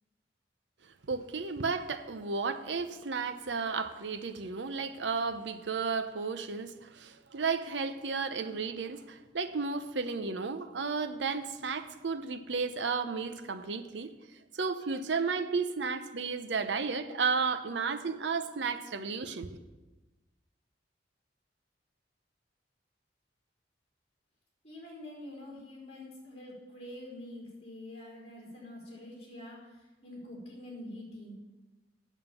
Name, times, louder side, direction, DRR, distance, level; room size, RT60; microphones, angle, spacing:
voice 1, 1.0-14.1 14.5-19.6, right 4 dB, 75° right, 0.7 m, -33 dB
voice 2, 24.6-31.4, left 1 dB, 35° left, 4.0 m, -46 dB
8.9 x 7.2 x 6.9 m
head